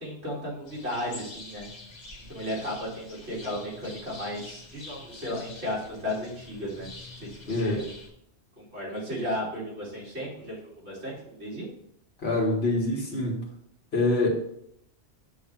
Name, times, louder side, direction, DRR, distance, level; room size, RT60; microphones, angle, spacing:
voice 1, 0.0-1.7 2.3-6.9 7.2-7.8 8.6-11.7, left 1 dB, 70° right, -6 dB, 2.9 m, -34 dB
sound 1, 0.7-8.1, left 2 dB, 85° left, 1.6 m, -46 dB
voice 2, 7.5-7.8 12.2-13.5 13.9-14.3, left 2 dB, 65° left, -2 dB, 1.8 m, -25 dB
7.1 x 3.3 x 5.9 m, 0.72 s
omnidirectional pair, 1.1 m